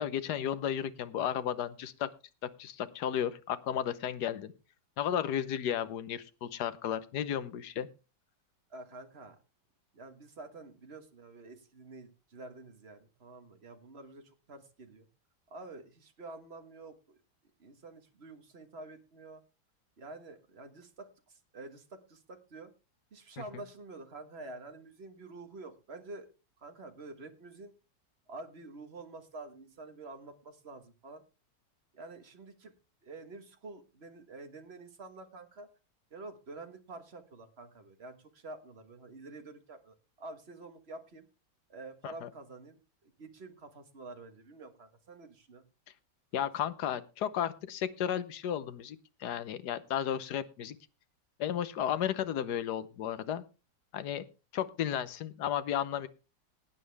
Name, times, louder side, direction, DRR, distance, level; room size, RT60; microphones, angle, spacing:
voice 1, 0.0-2.1 2.4-4.5 5.0-7.9 23.4-23.5 42.0-42.3 46.3-50.8 51.4-53.4 53.9-54.2 54.5-56.1, left 9 dB, 65° left, 13 dB, 1.4 m, -33 dB
voice 2, 8.7-9.4 9.9-15.1 15.5-17.2 17.6-19.4 20.0-22.7 23.1-26.3 26.6-27.7 28.3-31.2 31.9-32.7 33.0-35.7 36.1-41.3 41.7-45.6, right 2 dB, 35° right, 7 dB, 1.6 m, -48 dB
18.0 x 9.2 x 3.4 m, 0.30 s
omnidirectional pair, 2.0 m